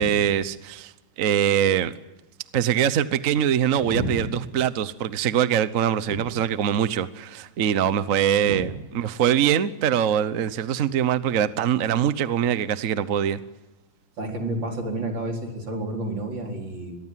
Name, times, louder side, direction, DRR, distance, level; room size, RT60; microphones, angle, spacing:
voice 1, 0.0-1.9 2.5-13.4, right 9 dB, 55° right, 14 dB, 1.2 m, -23 dB
voice 2, 3.8-4.3 6.1-6.2 8.4-8.6 14.2-17.0, right 1 dB, 90° right, 2 dB, 5.1 m, -30 dB
25.0 x 22.0 x 7.5 m, 1.0 s
omnidirectional pair, 2.0 m